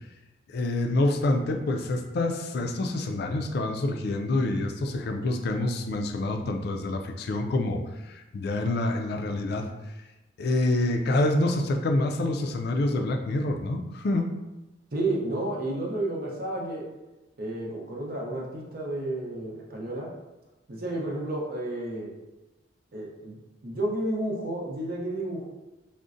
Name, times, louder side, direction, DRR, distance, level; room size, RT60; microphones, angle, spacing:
voice 1, 0.5-9.7 10.4-14.3, left 2 dB, 60° left, 4 dB, 0.4 m, -27 dB
voice 2, 14.9-16.8 17.4-20.1 20.7-22.1 22.9-23.4 23.6-25.4, right 1 dB, 50° right, -2 dB, 0.7 m, -31 dB
3.7 x 2.1 x 2.5 m, 1.1 s
head